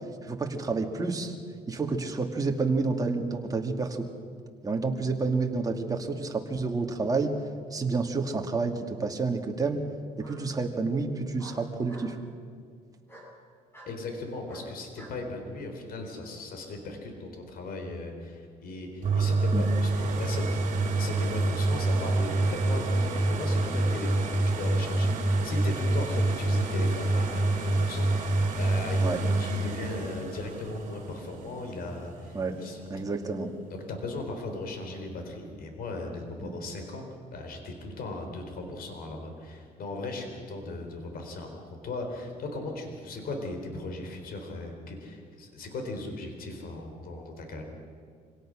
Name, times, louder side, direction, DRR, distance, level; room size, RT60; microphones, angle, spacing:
voice 1, 0.2-1.4 1.7-4.0 4.6-7.4 7.7-9.8 10.2-12.2 19.5-19.7 29.0-29.2 32.3-32.5 32.9-33.5 36.4-36.5, right 3 dB, 20° right, 3 dB, 2.4 m, -29 dB
Bark, 10.2-10.4 11.4-12.1 13.1-13.3 13.7-13.9 14.5-15.2, equal, 15° left, 7.7 m, -48 dB
voice 2, 13.9-20.7 20.9-33.1 33.9-37.0 37.3-47.6, left 2 dB, 60° left, 4 dB, 4.1 m, -38 dB
sound 1, 19.0-32.7 33.2-33.3, right 2 dB, 45° right, 3.4 m, -27 dB
25.5 x 17.5 x 6.5 m, 2.1 s
cardioid pair, 110°, 17 cm